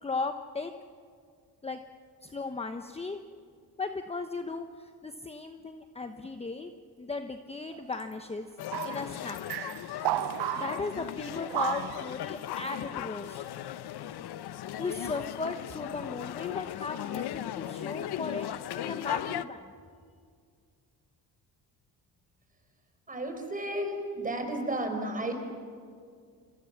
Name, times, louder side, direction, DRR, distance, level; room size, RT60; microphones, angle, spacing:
voice 1, 0.0-0.7 1.6-1.8 2.2-3.2 3.8-6.7 7.0-8.5 8.8-9.4 10.6-13.4 14.8-19.7, left 3 dB, 15° left, 7 dB, 1.1 m, -36 dB
sound 1, 7.7-8.0 8.7-9.1 9.5-10.9 11.5-12.2, right 15 dB, 75° right, 0.8 m, -33 dB
sound 2, 8.6-19.4, left 11 dB, 70° left, 1.1 m, -37 dB
voice 2, 23.1-25.3, right 1 dB, 20° right, 5 dB, 5.4 m, -33 dB
29.0 x 26.5 x 7.3 m, 2.1 s
cardioid pair, 115°, 40 cm